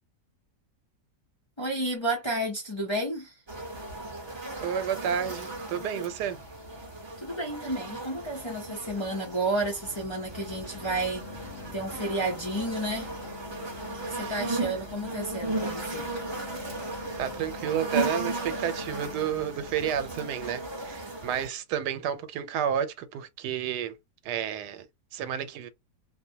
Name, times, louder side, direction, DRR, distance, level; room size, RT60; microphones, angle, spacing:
voice 1, 1.6-3.3 7.2-11.2 11.7-13.1 13.9-16.1, right 1 dB, 30° left, 0.5 m, -31 dB
sound 1, 3.5-21.5, right 2 dB, 25° right, 0.7 m, -36 dB
voice 2, 4.6-6.4 14.1-14.5 17.2-24.0 24.2-24.9 25.1-25.7, right 9 dB, 90° right, 1.2 m, -31 dB
sound 2, 9.8-21.3, left 6 dB, 60° left, 0.8 m, -47 dB
2.7 x 2.1 x 2.7 m
omnidirectional pair, 1.7 m